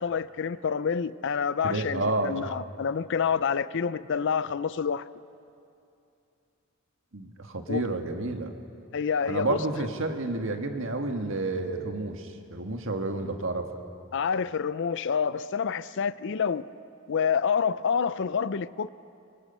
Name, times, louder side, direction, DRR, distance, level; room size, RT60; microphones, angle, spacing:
voice 1, 0.0-5.0 7.7-7.9 8.9-9.6 14.1-16.7 17.1-18.9, left 6 dB, 60° left, 0.5 m, -28 dB
voice 2, 1.6-2.4 7.1-8.5 9.2-13.7, right 2 dB, 65° right, 1.7 m, -30 dB
25.0 x 25.0 x 5.5 m
head